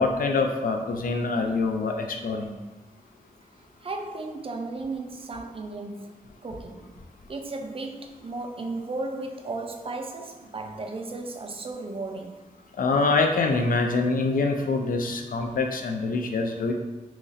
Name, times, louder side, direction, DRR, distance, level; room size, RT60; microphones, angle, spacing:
voice 1, 0.0-2.5 12.8-16.7, left 3 dB, 75° left, 0.4 m, -25 dB
voice 2, 3.8-6.2 6.4-6.9 7.3-12.4, right 3 dB, 40° right, 0.4 m, -35 dB
2.9 x 2.6 x 3.9 m
wide cardioid pair, 135°, 14 cm